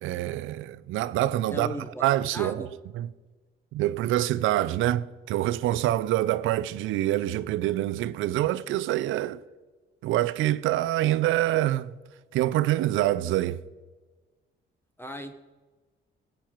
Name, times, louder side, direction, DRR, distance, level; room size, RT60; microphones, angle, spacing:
voice 1, 0.0-1.7 2.0-2.7 3.0-3.1 3.7-9.4 10.0-11.9 12.3-13.6, right 14 dB, 90° right, 0.6 m, -26 dB
voice 2, 1.5-2.7 15.0-15.3, equal, 10° left, 1.0 m, -37 dB
17.5 x 9.0 x 4.5 m
cardioid pair, 90°, 20 cm